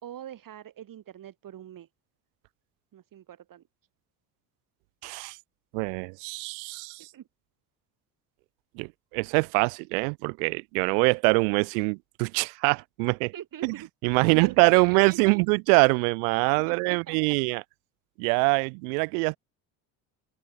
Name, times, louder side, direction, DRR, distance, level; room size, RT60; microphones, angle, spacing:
voice 1, 0.0-1.9 2.9-3.6 7.0-7.2 13.3-13.9 14.2-15.4 16.6-17.4, right 11 dB, 50° right, 2.9 m, -43 dB
voice 2, 5.0-5.4 5.7-7.1 8.7-13.3 13.6-13.7 14.0-17.6 18.2-19.4, right 36 dB, 85° right, 1.1 m, -24 dB
open air
supercardioid pair, 90°, 43 cm